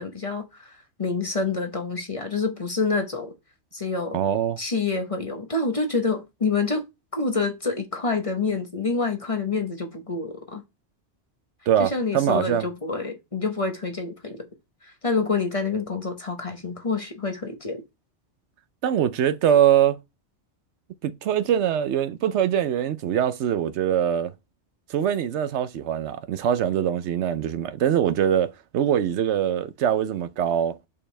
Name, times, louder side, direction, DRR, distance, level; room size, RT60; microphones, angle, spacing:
voice 1, 0.0-3.3 3.7-4.2 4.6-6.8 7.1-10.6 11.8-14.5 14.8-17.8, left 4 dB, 30° left, 1.0 m, -27 dB
voice 2, 4.1-4.6 11.7-12.7 18.8-20.0 21.0-24.3 24.9-30.8, right 9 dB, 75° right, 0.9 m, -23 dB
6.6 x 5.4 x 3.2 m
omnidirectional pair, 1.2 m